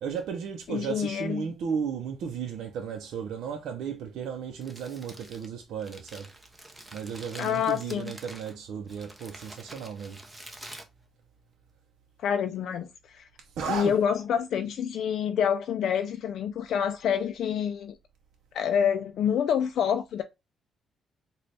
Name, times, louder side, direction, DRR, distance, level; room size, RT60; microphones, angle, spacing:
voice 1, 0.0-6.3 6.9-10.2 13.4-14.0, right 7 dB, 80° right, 0.5 m, -34 dB
voice 2, 0.7-1.4 7.4-8.1 12.2-13.3 13.7-18.0 18.5-20.2, left 8 dB, 70° left, 0.3 m, -27 dB
Crumpling crinkling, 4.5-11.7, right 1 dB, 10° right, 0.7 m, -48 dB
3.9 x 2.3 x 3.2 m
cardioid pair, 90°, 0 cm